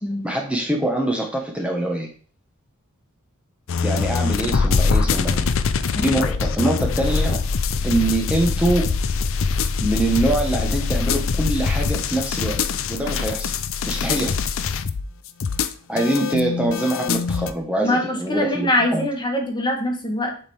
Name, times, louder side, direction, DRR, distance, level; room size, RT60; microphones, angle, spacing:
voice 1, 0.2-2.1 3.8-5.5 6.0-7.4 7.8-8.9 9.8-12.6 12.9-13.5 13.9-14.4 15.9-19.1, right 1 dB, 5° right, 0 dB, 1.1 m, -24 dB
sound 1, 3.7-17.5, left 5 dB, 65° left, 0.5 m, -23 dB
voice 2, 17.8-20.4, left 1 dB, 20° left, 2 dB, 1.2 m, -23 dB
7.4 x 3.9 x 4.6 m, 0.41 s
head